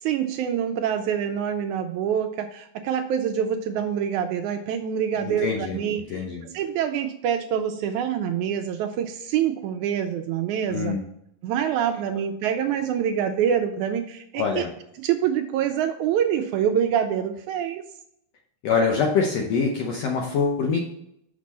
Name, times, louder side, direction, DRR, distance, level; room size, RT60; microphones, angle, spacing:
voice 1, 0.0-11.0 11.4-14.7 15.0-17.8, right 9 dB, 85° right, 6 dB, 1.7 m, -26 dB
voice 2, 5.2-5.8 6.1-6.4 10.7-11.0 14.4-14.7 18.6-20.8, left 5 dB, 80° left, 0 dB, 1.5 m, -24 dB
6.3 x 6.0 x 4.2 m, 0.75 s
omnidirectional pair, 4.0 m